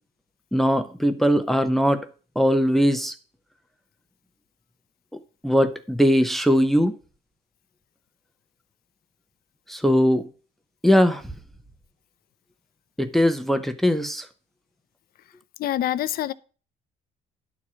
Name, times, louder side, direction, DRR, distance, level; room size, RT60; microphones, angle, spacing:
voice 1, 0.5-2.1 2.4-3.1 5.4-6.9 9.7-10.2 10.8-11.2 13.0-14.2, equal, ahead, 0.8 m, -20 dB
voice 2, 15.6-16.3, left 12 dB, 60° left, 0.7 m, -25 dB
11.0 x 4.6 x 6.2 m
cardioid pair, 110°, 17 cm